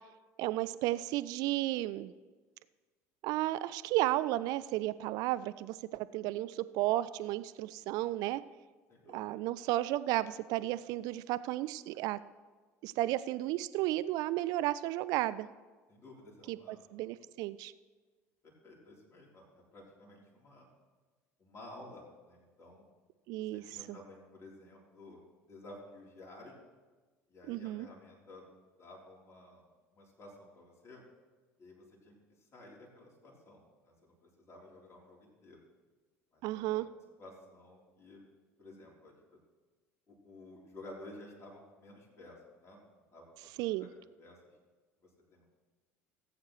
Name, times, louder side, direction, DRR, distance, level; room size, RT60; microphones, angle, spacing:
voice 1, 0.4-2.1 3.2-8.4 9.1-12.2 12.8-15.5 16.5-17.7 23.3-23.6 27.5-27.9 36.4-36.9 43.6-43.9, right 16 dB, 50° right, 15 dB, 0.3 m, -33 dB
voice 2, 8.9-9.4 15.9-17.1 18.4-20.7 21.4-22.8 23.5-25.2 25.5-26.5 27.3-28.4 28.8-29.6 29.9-31.0 31.6-32.2 32.5-35.6 36.3-36.9 37.2-38.2 38.6-39.4 40.1-42.8 43.1-43.5 43.8-43.9 44.2-44.4 45.0-45.5, left 1 dB, 35° left, -2 dB, 3.7 m, -53 dB
18.5 x 8.3 x 3.2 m, 1.3 s
figure-of-eight pair, 65°, 8 cm